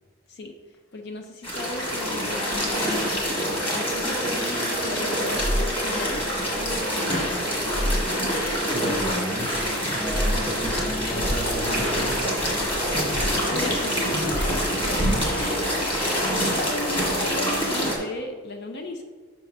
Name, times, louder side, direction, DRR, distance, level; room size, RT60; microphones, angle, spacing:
voice 1, 0.9-8.4 13.5-14.7 15.0-15.7 16.0-19.0, left 2 dB, 55° left, 5 dB, 0.5 m, -36 dB
sound 1, 1.4-18.0, equal, 25° left, 1.6 m, -26 dB
sound 2, 5.3-6.2 6.5-6.8 7.1-8.6 8.8-9.1 9.4-11.0 11.2-11.5 11.8-14.7, equal, 75° left, 1.4 m, -31 dB
voice 2, 8.7-9.5 9.8-12.2, equal, 10° left, 0 dB, 0.9 m, -33 dB
5.9 x 4.4 x 5.3 m, 1.5 s
head